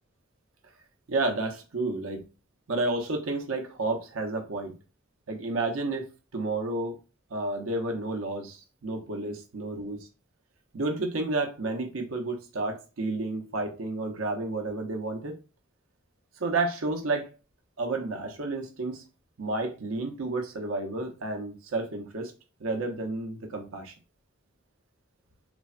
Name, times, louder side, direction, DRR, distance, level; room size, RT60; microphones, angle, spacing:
voice 1, 1.1-2.2 2.7-4.8 5.3-6.0 6.3-7.0 7.3-10.0 10.7-15.4 16.4-17.3 17.8-19.0 19.4-22.3 22.6-23.9, right 2 dB, 85° right, 0.6 m, -31 dB
3.2 x 2.1 x 2.4 m
head